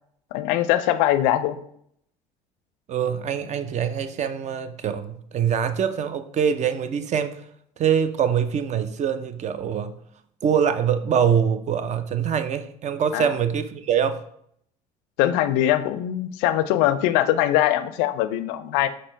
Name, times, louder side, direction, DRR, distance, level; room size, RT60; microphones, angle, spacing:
voice 1, 0.3-1.6 13.1-13.3 15.2-18.9, left 13 dB, 70° left, 12 dB, 0.4 m, -22 dB
voice 2, 2.9-7.4 7.8-9.9 10.4-14.2, right 8 dB, 40° right, 10 dB, 0.5 m, -24 dB
4.3 x 3.2 x 3.8 m, 0.68 s
hypercardioid pair, 65°, 19 cm